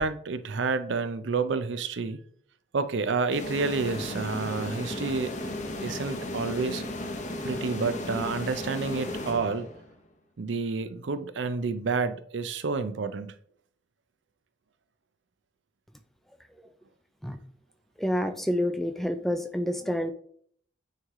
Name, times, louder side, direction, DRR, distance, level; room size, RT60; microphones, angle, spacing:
voice 1, 0.0-2.2 2.7-5.3 5.8-6.8 7.4-9.7 10.4-13.3, right 4 dB, 75° right, 0.5 m, -29 dB
sound 1, 3.3-9.9, left 1 dB, 40° left, 0.9 m, -35 dB
voice 2, 18.0-20.1, equal, ahead, 0.3 m, -28 dB
9.2 x 3.2 x 3.6 m
head